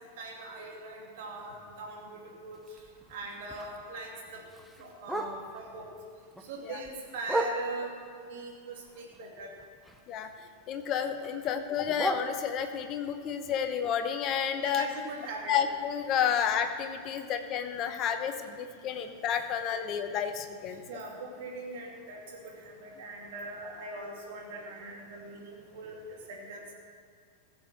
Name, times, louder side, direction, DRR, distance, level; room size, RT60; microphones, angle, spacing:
voice 1, 0.0-2.6 3.1-4.4 4.8-5.9 6.4-9.5 14.6-15.5 20.9-26.7, right 2 dB, 50° right, -1 dB, 2.7 m, -41 dB
Bark, 2.5-5.7 6.1-8.0 8.5-10.3 10.6-12.9 13.4-17.3 17.6-17.7 18.0-18.4 18.8-18.9 19.3-19.4 19.9-20.0, right 1 dB, ahead, 0.9 m, -39 dB
voice 2, 10.7-14.9 15.5-20.8, left 8 dB, 35° left, 8 dB, 1.0 m, -31 dB
15.5 x 7.3 x 6.2 m, 2.2 s
figure-of-eight pair, 90°, 0 cm